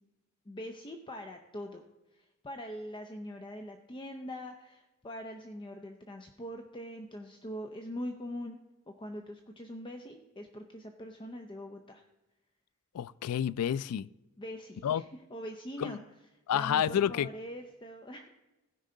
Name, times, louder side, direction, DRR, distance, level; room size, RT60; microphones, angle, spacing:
voice 1, 0.5-1.8 2.1-8.6 8.9-12.0 14.4-16.0 16.5-18.3, equal, 20° left, 0.6 m, -43 dB
voice 2, 12.9-14.1 14.8-15.0 15.8-16.0 16.5-17.3, left 9 dB, 90° left, 0.3 m, -29 dB
16.5 x 5.5 x 3.8 m
head